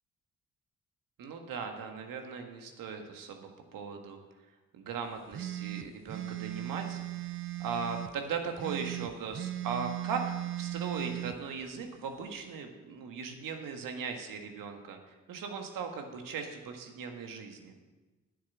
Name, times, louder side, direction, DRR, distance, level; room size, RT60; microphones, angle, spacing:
voice 1, 1.2-4.2 4.7-7.0 7.6-17.7, right 5 dB, 75° right, 4 dB, 1.7 m, -38 dB
sound 1, 5.3-8.1 8.6-11.4, right 14 dB, 40° right, 0.6 m, -37 dB
10.0 x 7.8 x 7.3 m, 1.2 s
supercardioid pair, 50°, 34 cm